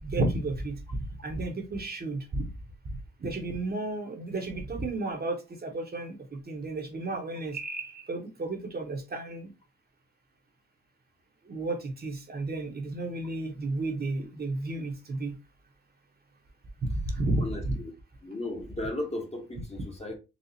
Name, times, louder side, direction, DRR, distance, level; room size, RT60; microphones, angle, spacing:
voice 1, 0.0-2.4 2.8-9.5 11.4-15.4 16.8-17.8, right 2 dB, 30° right, 0.9 m, -32 dB
voice 2, 17.4-17.9 18.2-20.1, left 1 dB, 20° left, 1.0 m, -35 dB
4.1 x 2.3 x 2.7 m
cardioid pair, 90°, 30 cm